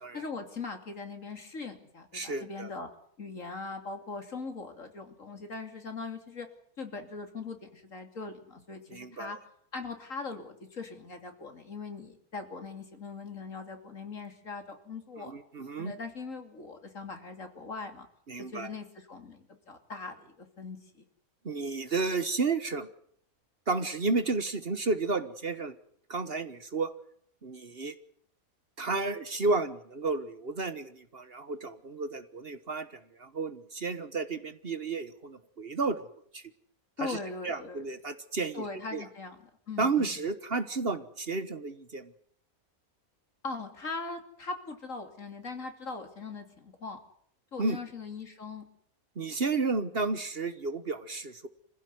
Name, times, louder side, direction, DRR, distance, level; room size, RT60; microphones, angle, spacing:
voice 1, 0.1-2.9 3.2-6.5 6.8-9.4 9.7-15.3 15.8-18.1 18.4-21.0 37.0-37.8 38.5-40.2 43.4-47.0 47.5-48.6, left 4 dB, 60° left, 6 dB, 3.2 m, -40 dB
voice 2, 2.1-2.7 8.9-9.4 15.2-15.9 18.3-18.7 21.4-22.9 23.7-25.8 26.1-26.9 27.4-27.9 28.8-36.1 36.3-36.4 37.0-37.2 37.4-38.6 38.9-39.1 39.8-42.1 47.6-47.8 49.2-51.5, right 3 dB, 45° right, 11 dB, 1.4 m, -32 dB
26.0 x 15.5 x 9.5 m, 0.66 s
omnidirectional pair, 1.5 m